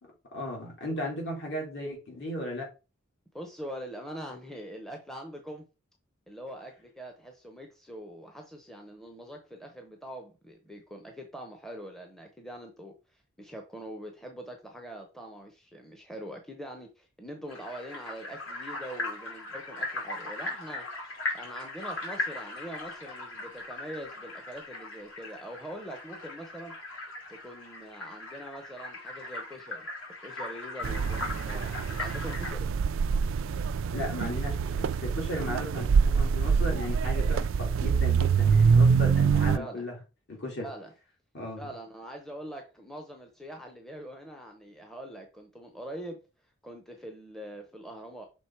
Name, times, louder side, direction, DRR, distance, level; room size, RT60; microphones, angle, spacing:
voice 1, 0.0-2.7 33.9-40.0 40.3-40.7 41.3-41.7, left 1 dB, 55° left, -1 dB, 2.8 m, -36 dB
voice 2, 3.3-5.7 6.3-26.7 27.3-29.9 30.2-32.7 39.5-39.9 40.6-40.9 41.6-46.2 46.6-48.2, right 1 dB, ahead, 3 dB, 0.7 m, -43 dB
sound 1, 17.5-32.5, left 2 dB, 70° left, 2.7 m, -39 dB
sound 2, 30.8-39.6, right 6 dB, 70° right, 0.3 m, -25 dB
6.1 x 3.7 x 4.4 m, 0.30 s
head